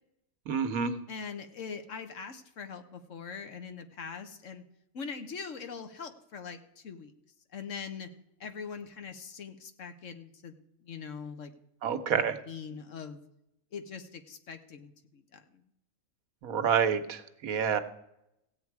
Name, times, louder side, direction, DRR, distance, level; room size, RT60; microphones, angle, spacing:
voice 1, 0.5-1.0 11.8-12.4 16.4-17.8, right 7 dB, 85° right, 9 dB, 1.4 m, -28 dB
voice 2, 1.1-4.6 4.9-7.1 7.5-8.1 8.4-10.5 10.8-11.5 12.1-13.2 13.7-15.6, left 6 dB, 65° left, 8 dB, 1.3 m, -42 dB
15.5 x 8.6 x 4.7 m, 0.83 s
omnidirectional pair, 1.5 m